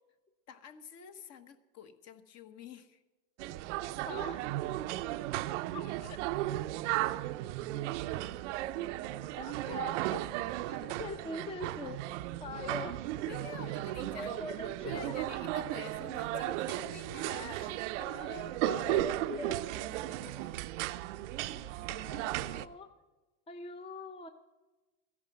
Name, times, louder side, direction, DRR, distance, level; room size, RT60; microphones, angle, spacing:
voice 1, 0.5-3.0 6.0-6.2 9.5-9.6 10.7-11.0 13.3-14.4 14.9-18.2 19.9-20.4, left 7 dB, 45° left, 9 dB, 1.4 m, -49 dB
sound 1, 3.4-22.7, right 15 dB, 85° right, 0.7 m, -35 dB
voice 2, 4.1-4.4 5.7-5.9 9.4-10.2 11.0-12.0 12.4-13.0 14.1-15.2 16.3-16.5 18.0-19.6 21.5-22.9 23.5-24.3, left 3 dB, 15° left, 8 dB, 0.7 m, -42 dB
14.5 x 11.0 x 6.2 m, 1.2 s
supercardioid pair, 130°, 35 cm